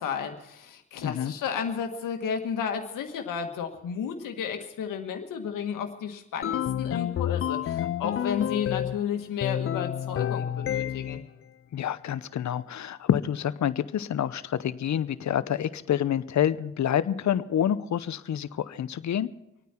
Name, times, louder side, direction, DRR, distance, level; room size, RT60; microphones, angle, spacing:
voice 1, 0.0-11.2, left 7 dB, 80° left, 5 dB, 1.6 m, -32 dB
voice 2, 1.0-1.3 11.7-19.3, left 10 dB, 60° left, 15 dB, 0.8 m, -27 dB
sound 1, 6.4-9.0 9.4-11.3, left 10 dB, 45° left, 0.4 m, -29 dB
26.0 x 9.4 x 4.4 m, 0.88 s
supercardioid pair, 45°, 32 cm